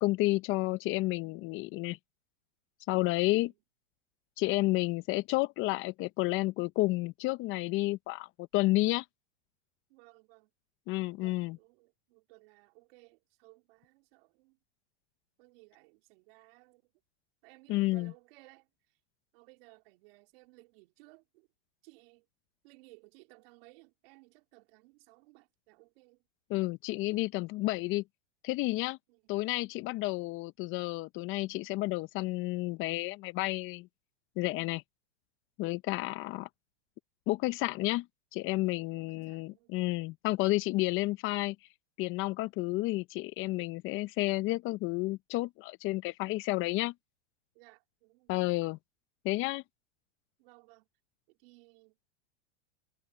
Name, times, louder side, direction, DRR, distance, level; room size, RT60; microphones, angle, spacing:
voice 1, 0.0-2.0 2.9-3.5 4.4-9.0 10.9-11.6 17.7-18.1 26.5-28.0 28.4-29.0 29.3-33.9 34.4-34.8 35.6-36.5 37.3-38.1 38.3-41.6 42.0-46.9 48.3-48.8 49.2-49.6, left 20 dB, 35° left, 0.8 m, -31 dB
voice 2, 9.9-10.5 11.0-14.6 15.4-16.9 17.4-19.0 19.3-21.5 21.8-22.3 22.6-26.3 29.1-29.3 35.8-36.2 38.7-39.7 47.5-48.3 50.4-50.9 51.3-52.0, right 25 dB, 55° right, 4.2 m, -60 dB
hypercardioid pair, 125°, 34 cm